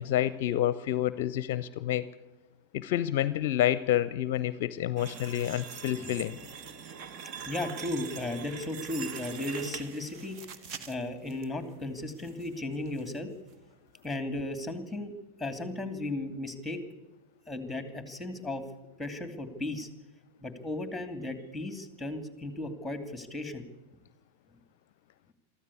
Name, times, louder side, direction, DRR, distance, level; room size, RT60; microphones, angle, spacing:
voice 1, 0.0-2.0 2.7-6.4, left 12 dB, 50° left, 17 dB, 0.6 m, -28 dB
sound 1, 5.0-11.4 11.9-12.5 12.9-13.0 13.5-13.6, right 6 dB, 40° right, 1.5 m, -43 dB
voice 2, 5.9-6.3 7.4-13.3 14.0-15.1 15.4-16.8 17.5-18.6 19.0-19.9 20.4-23.6, left 2 dB, ahead, 9 dB, 2.7 m, -35 dB
23.5 x 14.0 x 8.5 m, 1.1 s
figure-of-eight pair, 90°, 0 cm